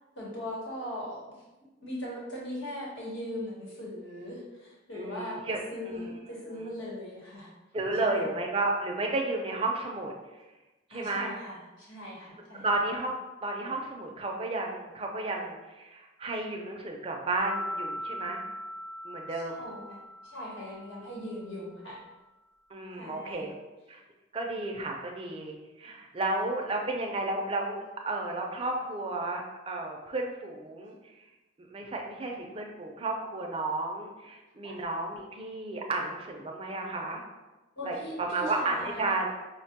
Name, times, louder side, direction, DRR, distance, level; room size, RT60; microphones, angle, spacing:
voice 1, 0.1-1.2 1.8-7.5 8.0-8.2 10.9-12.7 19.3-22.0 22.9-23.5 34.6-34.8 37.8-39.1, left 1 dB, 75° left, -4 dB, 1.1 m, -40 dB
voice 2, 4.9-5.6 5.8-6.7 7.7-10.1 10.9-11.3 12.5-18.4 19.0-19.6 22.7-23.5 23.9-24.0 24.3-30.9 31.6-37.2 37.8-39.3, right 2 dB, 30° right, 1 dB, 0.4 m, -32 dB
sound 1, 17.4-21.2, left 1 dB, 40° left, 0.5 m, -39 dB
5.2 x 2.2 x 2.8 m, 1.1 s
head